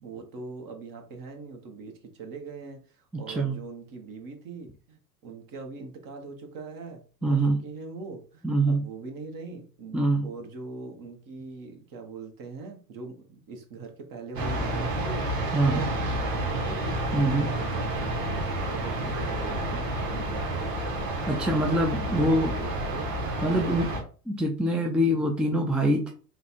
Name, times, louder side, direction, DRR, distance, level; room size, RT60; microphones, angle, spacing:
voice 1, 0.0-16.9 17.4-20.7 21.3-23.7, right 4 dB, 45° right, 3 dB, 1.4 m, -42 dB
voice 2, 3.1-3.6 7.2-7.6 8.4-8.8 9.9-10.3 15.5-15.8 17.1-17.5 21.3-22.5 23.4-23.9 24.3-26.1, right 1 dB, ahead, 1 dB, 0.5 m, -24 dB
sound 1, 14.4-24.0, right 1 dB, 75° right, 1.4 m, -30 dB
3.8 x 2.4 x 4.3 m, 0.38 s
hypercardioid pair, 90°, 48 cm